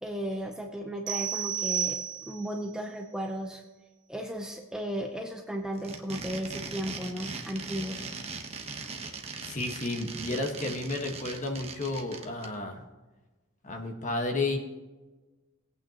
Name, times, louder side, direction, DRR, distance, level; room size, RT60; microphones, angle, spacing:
voice 1, 0.0-3.6 4.1-8.1, equal, 5° right, 1 dB, 0.7 m, -35 dB
sound 1, 1.1-2.6, right 9 dB, 55° right, 1.2 m, -31 dB
sound 2, 5.7-12.5, right 4 dB, 30° right, 1.1 m, -39 dB
voice 2, 9.4-12.8 13.6-14.6, left 2 dB, 35° left, 3 dB, 1.5 m, -32 dB
19.5 x 8.7 x 3.0 m, 1.2 s
head